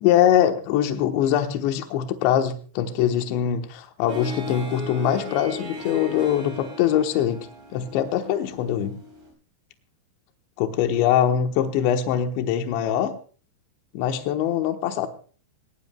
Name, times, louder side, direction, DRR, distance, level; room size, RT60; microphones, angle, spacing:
voice 1, 0.0-7.4 7.7-9.0 10.6-13.1 13.9-15.1, left 10 dB, 80° left, 6 dB, 3.3 m, -22 dB
Harp, 4.1-9.3, left 2 dB, 35° right, 6.3 m, -37 dB
20.5 x 18.0 x 2.2 m, 0.40 s
omnidirectional pair, 5.3 m